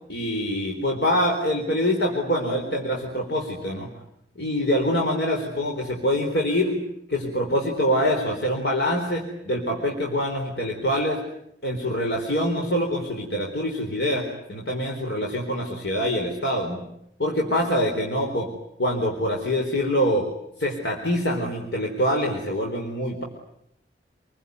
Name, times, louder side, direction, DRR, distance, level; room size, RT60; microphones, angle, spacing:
voice 1, 0.1-3.9 4.4-6.8 7.1-11.2 11.6-16.8 17.2-18.5 18.8-20.3 20.6-23.2, equal, 75° left, 1 dB, 4.2 m, -25 dB
27.5 x 22.0 x 9.5 m, 0.77 s
head